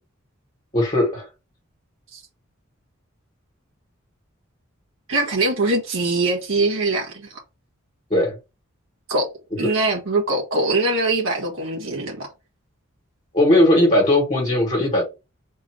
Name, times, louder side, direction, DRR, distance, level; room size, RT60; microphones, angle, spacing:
voice 1, 0.7-1.3 8.1-8.4 9.6-9.7 13.3-15.0, left 1 dB, 35° left, 1.4 m, -18 dB
voice 2, 5.1-7.3 9.1-9.3 9.6-12.3, right 2 dB, 75° right, 1.7 m, -22 dB
3.6 x 2.7 x 4.7 m
head